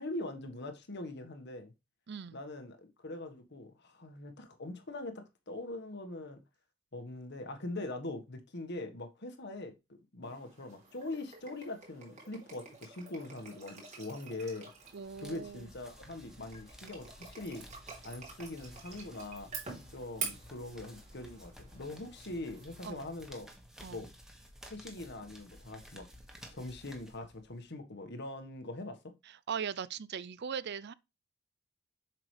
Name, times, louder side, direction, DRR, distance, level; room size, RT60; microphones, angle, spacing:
voice 1, 0.0-1.7 2.3-6.4 6.9-9.7 10.1-14.7 15.2-17.6 18.0-19.5 19.9-23.5 23.9-24.1 24.7-26.1 26.5-29.0, left 2 dB, 60° left, 1.5 m, -42 dB
voice 2, 2.1-2.4 14.9-15.7 22.8-23.1 23.8-24.0 29.3-30.9, right 7 dB, 55° right, 0.5 m, -39 dB
sound 1, 10.2-22.9, right 5 dB, 35° right, 3.4 m, -48 dB
sound 2, 14.7-27.6, equal, 5° right, 1.6 m, -54 dB
7.7 x 6.0 x 3.3 m
head